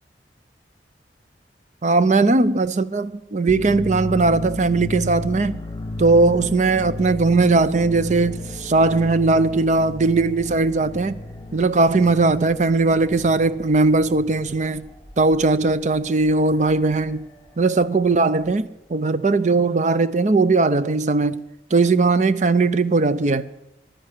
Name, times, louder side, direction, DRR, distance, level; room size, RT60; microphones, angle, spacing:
voice 1, 1.8-5.6 6.0-11.2 11.5-14.9 15.2-17.3 17.6-21.4 21.7-23.5, right 3 dB, 45° right, 0.6 m, -19 dB
sound 1, 3.5-14.9, left 2 dB, 45° left, 0.8 m, -34 dB
sound 2, 4.8-18.9, left 1 dB, 20° left, 2.2 m, -46 dB
11.5 x 10.5 x 8.2 m
head